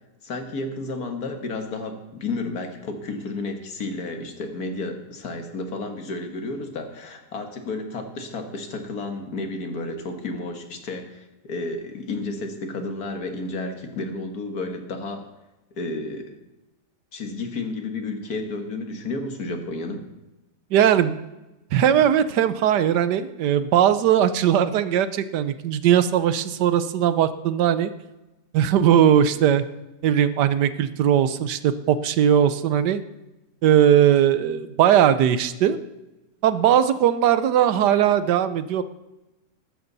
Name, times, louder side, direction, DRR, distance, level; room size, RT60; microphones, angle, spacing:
voice 1, 0.2-15.2 15.8-16.4 17.1-20.1, left 2 dB, 65° left, 5 dB, 2.0 m, -32 dB
voice 2, 20.7-21.1 21.7-27.9 28.5-29.6 30.0-33.0 33.6-35.8 36.4-38.8, right 10 dB, 85° right, 13 dB, 1.4 m, -19 dB
14.5 x 12.5 x 4.0 m, 1.0 s
omnidirectional pair, 1.8 m